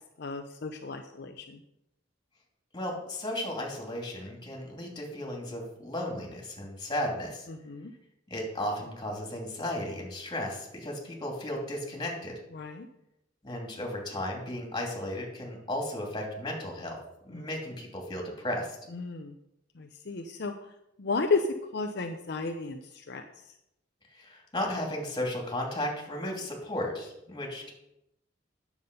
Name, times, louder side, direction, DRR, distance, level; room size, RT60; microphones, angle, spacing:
voice 1, 0.2-1.6 7.6-7.9 12.5-12.9 17.3-17.4 18.9-19.3 19.8-20.5 21.0-21.5 21.7-23.2, left 4 dB, 60° left, 4 dB, 0.7 m, -33 dB
voice 2, 2.7-7.5 8.3-12.4 13.4-17.0 17.2-18.7 24.1-27.7, left 1 dB, 25° left, 0 dB, 2.8 m, -34 dB
9.6 x 7.2 x 5.4 m, 0.83 s
head